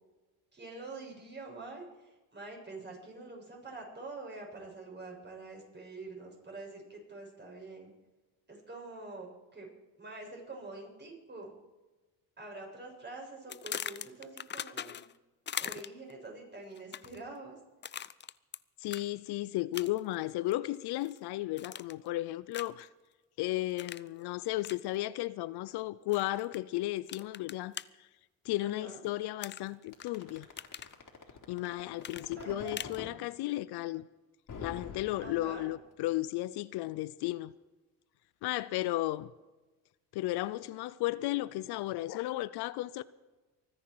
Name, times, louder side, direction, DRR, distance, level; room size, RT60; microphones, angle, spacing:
voice 1, 0.5-7.9 8.5-9.7 10.0-11.5 12.4-15.0 15.6-17.6 28.6-29.0 32.4-32.9 35.2-35.8, right 3 dB, 25° right, 6.9 m, -46 dB
sound 1, 13.5-15.2 15.5-16.1 16.8-17.2 17.8-18.6 18.9-19.1 19.7-20.1 20.5-21.2 21.6-22.1 22.5-22.8 23.8-24.1 24.6-24.8 26.1-26.6 27.1-27.8 29.4-30.1 30.4-30.9 32.0-33.0, left 9 dB, 30° left, 0.5 m, -41 dB
voice 2, 18.8-22.9 23.4-28.1 28.4-30.5 31.5-34.1 34.6-37.5 38.4-39.3 40.1-43.0, left 17 dB, 70° left, 0.6 m, -34 dB
sound 2, 29.9-33.1 34.5-35.9, left 5 dB, 50° left, 3.8 m, -45 dB
24.0 x 10.0 x 4.8 m
cardioid pair, 90°, 41 cm